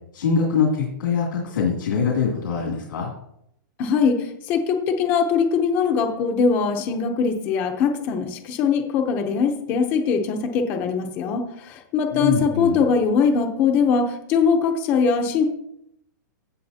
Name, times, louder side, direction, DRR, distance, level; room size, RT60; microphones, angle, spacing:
voice 1, 0.1-3.1 12.1-12.8, left 6 dB, 85° left, -2 dB, 2.6 m, -23 dB
voice 2, 3.8-15.4, left 5 dB, 20° left, 4 dB, 0.7 m, -21 dB
16.0 x 6.5 x 2.8 m, 0.75 s
hypercardioid pair, 180°, 11 cm